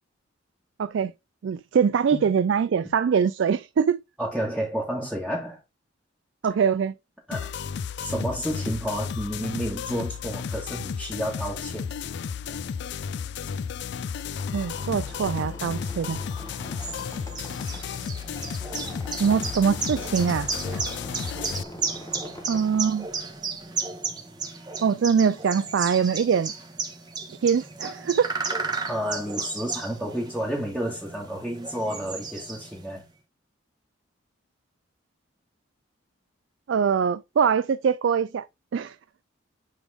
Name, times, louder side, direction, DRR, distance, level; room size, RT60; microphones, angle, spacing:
voice 1, 0.8-1.1 1.4-4.0 6.4-6.9 14.5-16.2 19.2-20.8 22.5-23.1 24.8-26.5 27.4-28.3 36.7-38.4 38.7-39.0, right 6 dB, 65° right, 0.3 m, -23 dB
voice 2, 4.2-5.6 7.3-7.5 8.0-11.9 28.9-33.0, equal, 5° right, 1.5 m, -30 dB
sound 1, 7.3-21.6, left 6 dB, 60° left, 0.3 m, -33 dB
Squeak, 14.4-23.7, left 1 dB, 15° left, 1.0 m, -44 dB
sound 2, 16.4-32.9, right 4 dB, 20° right, 1.2 m, -34 dB
9.9 x 3.5 x 3.5 m
head